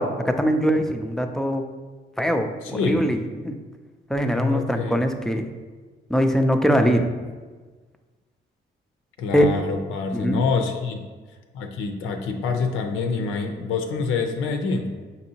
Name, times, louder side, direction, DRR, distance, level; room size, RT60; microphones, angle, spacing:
voice 1, 0.0-1.6 2.2-3.2 3.4-3.5 4.1-5.4 6.1-7.1 9.3-9.4 10.1-10.4, equal, ahead, 6 dB, 0.3 m, -22 dB
voice 2, 2.6-3.1 4.2-5.0 9.2-11.0 11.5-14.9, left 4 dB, 85° left, 4 dB, 0.5 m, -26 dB
5.8 x 2.7 x 2.8 m, 1.4 s
cardioid pair, 90°, 20 cm